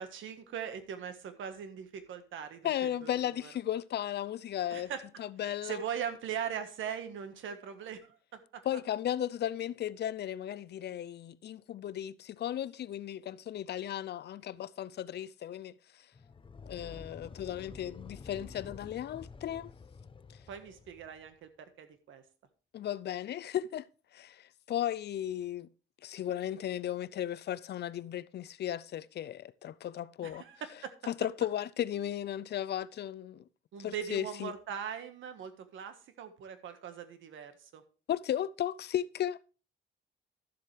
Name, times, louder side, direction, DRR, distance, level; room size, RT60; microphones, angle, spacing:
voice 1, 0.0-3.5 4.7-5.0 5.4-8.6 20.5-21.5 21.8-22.2 30.2-30.9 33.7-37.8, right 8 dB, 75° right, 1.5 m, -40 dB
voice 2, 2.6-4.9 5.2-5.8 8.7-15.7 16.7-19.7 22.7-23.9 24.1-25.7 26.0-30.4 31.1-33.4 33.8-34.5 38.1-39.4, left 11 dB, 55° left, 0.5 m, -35 dB
sound 1, 16.1-21.3, left 4 dB, 25° left, 0.7 m, -50 dB
12.5 x 7.4 x 3.3 m
cardioid pair, 90°, 20 cm